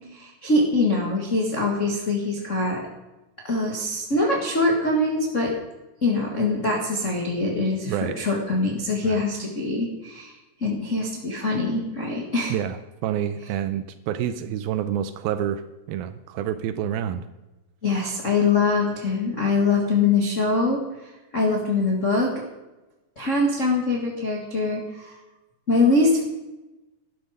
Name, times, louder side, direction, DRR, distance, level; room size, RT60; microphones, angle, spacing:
voice 1, 0.1-2.8 3.4-5.5 6.0-10.3 10.6-12.5 17.8-20.8 21.3-22.3 23.2-25.1 25.7-26.2, left 3 dB, 50° left, -2 dB, 0.8 m, -23 dB
voice 2, 7.9-8.2 9.0-9.2 12.5-15.6 15.9-17.2, right 10 dB, 80° right, 11 dB, 2.3 m, -28 dB
12.0 x 11.5 x 5.0 m, 1.0 s
omnidirectional pair, 4.6 m